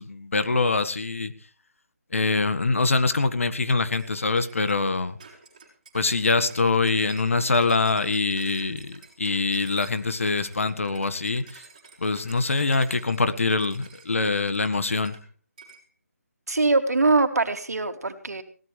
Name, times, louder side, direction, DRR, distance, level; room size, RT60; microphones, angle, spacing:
voice 1, 0.0-1.3 2.1-5.2 5.9-11.6 12.0-15.2, left 3 dB, 55° left, 12 dB, 1.6 m, -24 dB
sound 1, 3.7-15.2 15.6-15.8, right 5 dB, 25° right, 4.9 m, -50 dB
voice 2, 16.5-18.4, right 3 dB, 80° right, 7 dB, 2.7 m, -22 dB
19.5 x 17.0 x 3.4 m, 0.39 s
hypercardioid pair, 180°, 8 cm